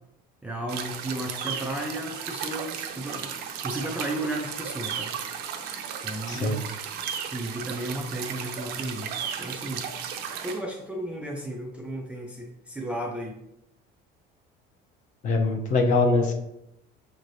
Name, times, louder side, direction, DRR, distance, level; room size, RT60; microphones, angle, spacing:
voice 1, 0.4-3.3 3.6-5.2 6.0-6.7 7.2-9.1 9.4-9.9 10.4-13.4, right 1 dB, 5° right, -1 dB, 0.3 m, -34 dB
sound 1, 0.7-10.6, right 8 dB, 60° right, 0.5 m, -35 dB
voice 2, 6.3-6.6 15.2-16.3, left 3 dB, 40° left, 4 dB, 0.6 m, -23 dB
6.4 x 3.1 x 2.6 m, 0.83 s
cardioid pair, 165°, 19 cm